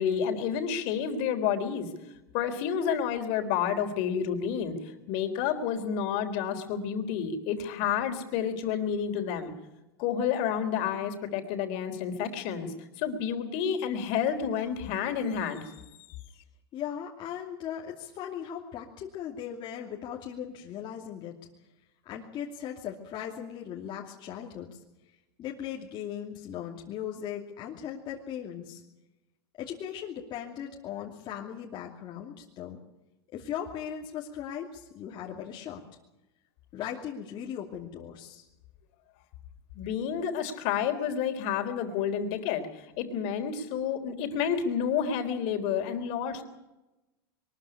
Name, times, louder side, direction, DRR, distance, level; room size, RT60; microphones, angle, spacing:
voice 1, 0.0-1.9 2.3-9.5 10.0-15.8 39.7-46.4, left 8 dB, 55° left, 7 dB, 3.7 m, -30 dB
voice 2, 16.7-21.3 22.0-24.7 25.4-28.8 29.6-32.8 33.3-35.8 36.7-38.4, left 9 dB, 35° left, -2 dB, 2.7 m, -38 dB
23.0 x 13.5 x 9.8 m, 0.96 s
supercardioid pair, 135°, 13 cm